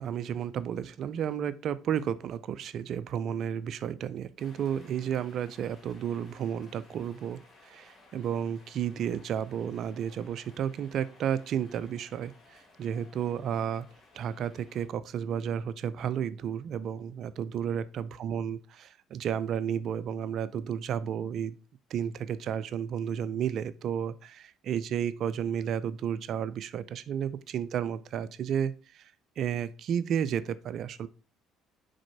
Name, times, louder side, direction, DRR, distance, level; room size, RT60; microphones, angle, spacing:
voice 1, 0.0-13.8 14.1-18.6 18.8-21.5 21.9-31.1, right 8 dB, 60° right, 15 dB, 0.5 m, -32 dB
sound 1, 4.4-14.9, left 3 dB, 45° left, 2.3 m, -58 dB
5.1 x 4.2 x 4.5 m, 0.35 s
supercardioid pair, 75°, 0 cm